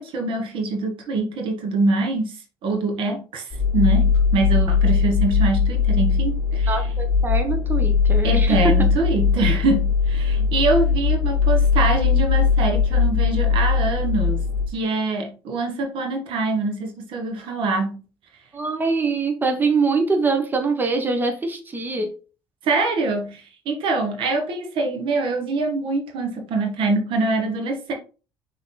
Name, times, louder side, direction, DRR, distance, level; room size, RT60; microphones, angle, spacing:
voice 1, 0.0-2.3 2.6-6.9 8.2-14.4 14.7-18.0 22.6-27.9, right 3 dB, 65° right, 1.7 m, -24 dB
sound 1, 3.5-14.7, left 5 dB, 15° left, 2.6 m, -20 dB
voice 2, 6.7-8.8 18.5-22.2, right 4 dB, 20° right, 1.3 m, -23 dB
6.2 x 3.9 x 4.0 m
supercardioid pair, 90°, 9 cm